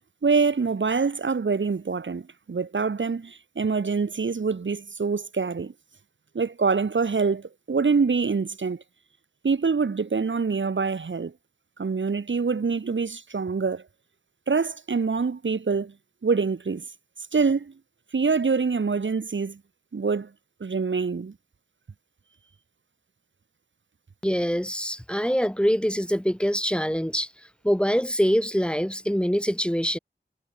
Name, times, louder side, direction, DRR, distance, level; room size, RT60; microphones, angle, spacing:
voice 1, 0.2-5.7 6.3-8.8 9.4-11.3 11.8-13.8 14.5-15.9 16.2-16.8 17.3-17.7 18.1-19.6 19.9-20.3 20.6-21.3, right 5 dB, 75° right, 0.9 m, -25 dB
voice 2, 24.2-27.3 27.6-30.0, equal, 5° left, 1.1 m, -24 dB
wide cardioid pair, 50°, 20 cm